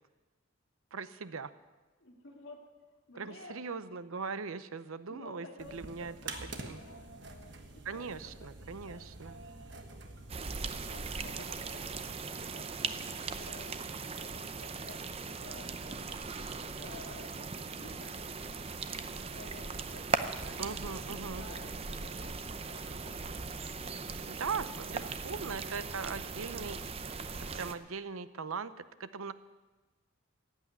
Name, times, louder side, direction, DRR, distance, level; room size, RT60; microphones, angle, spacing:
voice 1, 0.9-1.5 3.2-6.1 6.4-6.8 7.8-9.4 20.6-21.5 24.3-26.8 27.5-29.3, right 5 dB, 90° right, 14 dB, 0.7 m, -40 dB
voice 2, 2.0-2.6 3.1-3.6 5.1-9.0 10.6-12.2 12.5-13.8 14.1-14.3 14.6-18.2 19.2-23.3, left 2 dB, 60° left, 1 dB, 2.3 m, -53 dB
sound 1, 5.6-11.5, right 3 dB, 55° right, 1.4 m, -47 dB
sound 2, 10.3-27.7, right 4 dB, 30° right, 0.6 m, -39 dB
15.0 x 8.4 x 9.4 m, 1.2 s
head